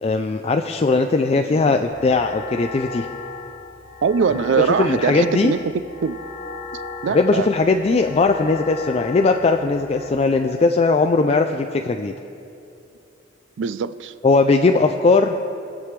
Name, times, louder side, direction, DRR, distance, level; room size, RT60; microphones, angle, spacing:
voice 1, 0.0-3.1 4.6-5.5 7.1-12.1 14.2-15.4, left 3 dB, 35° left, 0.3 m, -19 dB
sound 1, 1.9-10.1, left 3 dB, 50° left, 1.1 m, -35 dB
voice 2, 4.0-5.7 6.0-6.2 7.0-7.5 13.6-14.1, right 6 dB, 70° right, 0.4 m, -22 dB
22.5 x 7.6 x 3.3 m
head